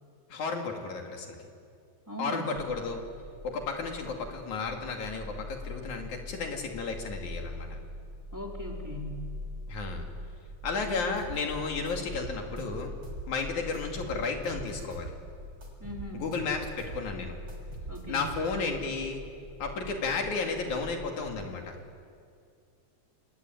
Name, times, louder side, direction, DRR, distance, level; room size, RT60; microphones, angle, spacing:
voice 1, 0.3-1.5 2.2-3.0 3.4-7.8 9.7-10.1 10.6-12.9 13.3-15.1 16.1-17.4 18.1-19.2 19.6-21.8, left 4 dB, 80° left, 2 dB, 3.9 m, -33 dB
voice 2, 2.1-2.5 8.3-9.2 15.8-16.3 17.9-18.3, equal, 5° right, -1 dB, 3.3 m, -39 dB
sound 1, 2.5-21.3, left 1 dB, 25° right, 2.9 m, -43 dB
sound 2, 11.2-11.4 11.9-13.3 13.7-15.2 15.6-17.0 17.5-18.7, right 4 dB, 45° right, 6.3 m, -43 dB
27.5 x 21.5 x 9.3 m, 2.4 s
omnidirectional pair, 3.3 m